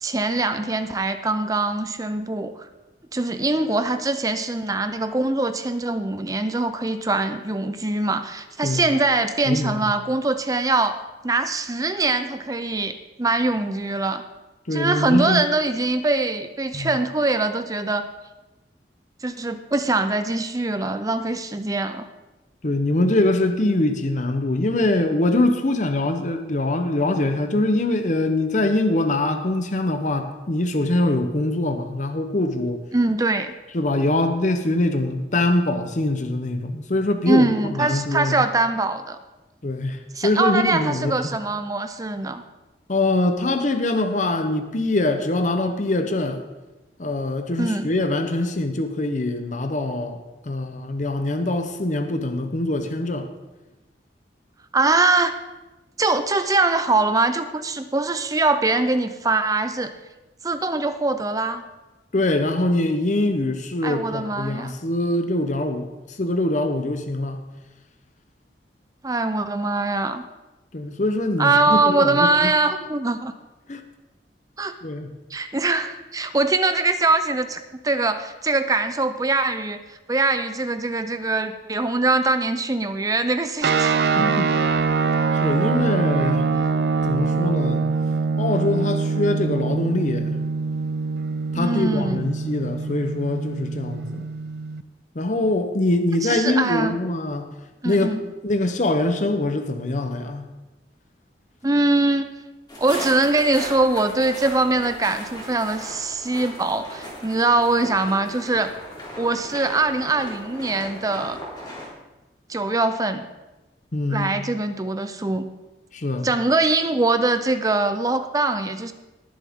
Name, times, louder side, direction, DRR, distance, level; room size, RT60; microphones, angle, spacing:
voice 1, 0.0-2.5 3.1-14.2 14.7-18.1 19.2-22.1 32.9-33.5 37.3-39.2 40.2-42.4 47.6-47.9 54.7-55.3 56.0-59.9 60.4-61.6 63.8-64.7 69.0-70.2 71.4-73.3 74.6-74.7 75.3-83.9 91.6-92.3 96.2-97.0 97.8-98.2 101.6-102.3 102.8-108.7 109.2-111.4 112.5-113.3 114.1-115.5 116.2-118.9, right 2 dB, 20° right, 9 dB, 0.6 m, -22 dB
voice 2, 9.5-9.8 14.7-15.4 16.7-16.9 22.6-32.8 33.7-38.4 39.6-41.2 42.9-46.4 47.0-50.2 50.5-53.3 62.1-65.9 66.2-67.4 70.7-72.5 73.7-73.8 74.8-75.1 84.0-84.5 85.4-86.5 87.1-87.9 88.4-90.4 91.5-94.2 95.1-97.5 97.8-98.1 98.4-100.4 113.9-114.3 115.9-116.3, left 2 dB, 45° left, 7 dB, 0.8 m, -23 dB
sound 1, 83.6-94.8, right 4 dB, 60° right, 0.5 m, -24 dB
sound 2, 102.7-111.9, left 1 dB, 25° left, 3.2 m, -37 dB
19.5 x 7.5 x 3.7 m, 1.1 s
head